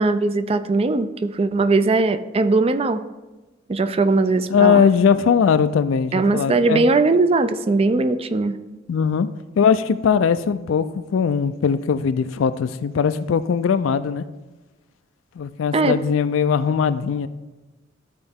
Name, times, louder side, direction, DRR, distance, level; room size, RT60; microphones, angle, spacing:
voice 1, 0.0-3.0 3.7-4.8 6.1-8.6 15.7-16.0, right 3 dB, 30° right, 11 dB, 0.4 m, -19 dB
voice 2, 4.5-6.9 8.9-9.3 9.6-14.3 15.4-17.3, left 6 dB, 85° left, 12 dB, 0.4 m, -20 dB
13.0 x 4.3 x 3.5 m, 1.1 s
head